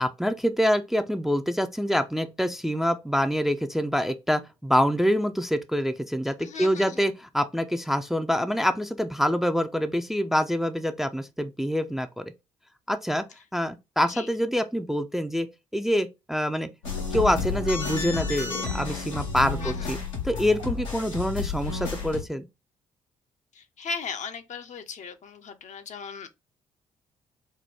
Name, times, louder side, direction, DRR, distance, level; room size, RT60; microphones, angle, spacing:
voice 1, 0.0-12.3 12.9-13.2 13.5-15.5 15.7-16.7 17.1-20.0 20.2-22.4, equal, ahead, 0.5 m, -26 dB
voice 2, 6.4-7.1 14.1-14.3 19.5-19.9 23.5-26.3, left 5 dB, 50° left, 0.6 m, -37 dB
sound 1, 16.8-22.2, left 4 dB, 85° left, 0.9 m, -31 dB
4.2 x 2.2 x 3.3 m
hypercardioid pair, 40°, 16 cm